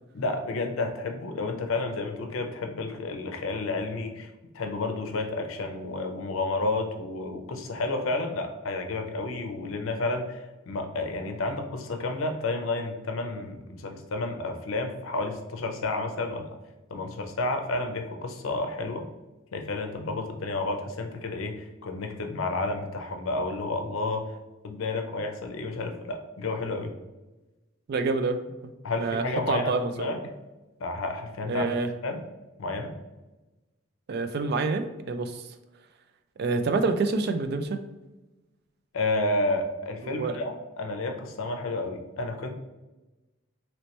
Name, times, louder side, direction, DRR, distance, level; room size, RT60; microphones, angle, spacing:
voice 1, 0.1-4.3 4.5-16.5 16.9-19.1 19.5-24.3 24.6-26.9 28.8-30.2 30.8-31.7 32.0-32.2 32.6-33.0 38.9-42.5, left 2 dB, 90° left, 4 dB, 0.5 m, -31 dB
voice 2, 27.9-28.4 28.6-28.7 29.0-30.1 31.5-31.9 34.1-35.4 36.4-37.8 40.0-40.4, right 3 dB, 50° right, 8 dB, 0.3 m, -27 dB
3.0 x 2.9 x 3.1 m, 1.1 s
head